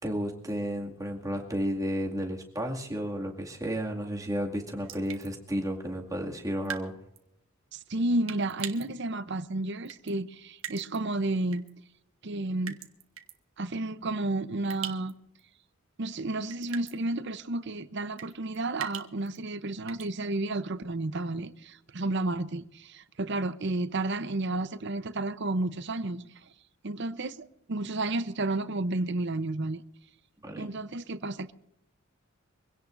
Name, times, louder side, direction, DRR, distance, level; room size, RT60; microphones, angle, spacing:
voice 1, 0.0-7.0 30.4-30.7, equal, 15° right, 2.2 m, -32 dB
sound 1, 4.8-5.3 6.6-6.9 7.2-7.3 8.3-8.9 9.8-10.1 10.6-11.0 11.5-11.7 12.7-13.3 14.7-15.1 15.4-15.5 16.5-17.0 18.2-19.4 19.9-20.1, right 9 dB, 80° right, 1.5 m, -40 dB
voice 2, 7.7-11.7 12.2-12.8 13.6-15.1 16.0-26.3 26.8-29.8 30.6-31.5, right 2 dB, 55° right, 0.8 m, -31 dB
24.5 x 17.0 x 2.6 m
head